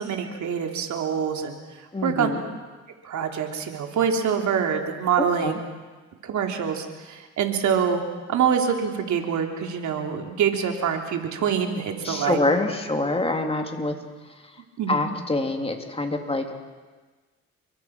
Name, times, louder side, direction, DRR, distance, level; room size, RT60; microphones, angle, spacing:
voice 1, 0.0-1.6 2.0-2.3 3.0-5.6 6.2-8.0 8.3-12.4 14.8-15.1, right 7 dB, 70° right, 3 dB, 3.4 m, -25 dB
voice 2, 1.9-2.4 5.2-5.6 12.0-13.9 14.3-14.5 14.9-16.5, left 2 dB, 20° left, 4 dB, 3.2 m, -26 dB
29.0 x 23.5 x 6.1 m, 1.3 s
cardioid pair, 90°, 30 cm